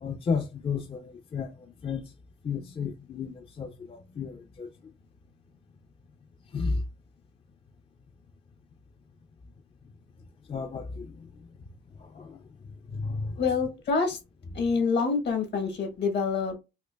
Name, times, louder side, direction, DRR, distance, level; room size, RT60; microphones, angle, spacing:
voice 1, 0.0-1.5 1.8-2.1 2.4-4.7 6.5-6.8 10.5-11.3 12.0-12.4 12.9-13.4, left 5 dB, 30° left, 0.4 m, -33 dB
voice 2, 13.4-14.2 14.5-16.6, left 5 dB, 60° left, 1.1 m, -26 dB
4.2 x 2.5 x 2.2 m
cardioid pair, 90°, 20 cm